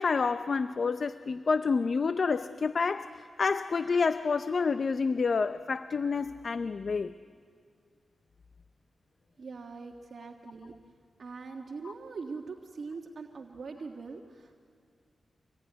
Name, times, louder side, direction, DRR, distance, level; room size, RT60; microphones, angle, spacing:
voice 1, 0.0-7.1 11.8-11.9, left 4 dB, 60° left, 0.6 m, -28 dB
voice 2, 9.4-10.7 11.2-14.5, right 4 dB, 65° right, 1.4 m, -42 dB
26.5 x 21.5 x 9.4 m
cardioid pair, 70°, 0 cm